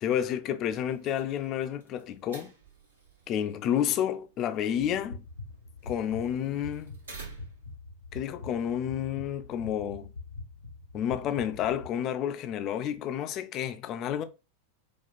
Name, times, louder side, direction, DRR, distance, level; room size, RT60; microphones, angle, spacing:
voice 1, 0.0-2.5 3.3-5.2 5.8-7.0 8.1-10.1 10.9-14.2, left 10 dB, 35° left, 0.4 m, -30 dB
sound 1, 0.8-7.8, right 4 dB, 70° right, 1.0 m, -52 dB
sound 2, 4.8-11.9, left 3 dB, 90° left, 0.8 m, -44 dB
4.3 x 2.3 x 2.3 m
figure-of-eight pair, 90°, 0 cm